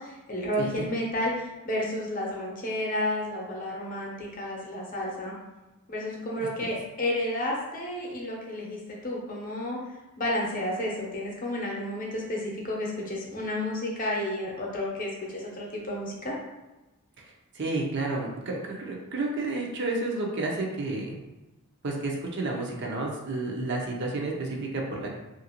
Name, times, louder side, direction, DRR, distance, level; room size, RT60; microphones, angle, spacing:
voice 1, 0.0-5.3 5.9-9.8 10.2-16.3, left 1 dB, 40° left, -2 dB, 0.7 m, -31 dB
voice 2, 6.4-6.8 17.5-21.2 21.8-25.2, right 2 dB, 55° right, -1 dB, 0.6 m, -31 dB
2.9 x 2.5 x 2.9 m, 1.0 s
head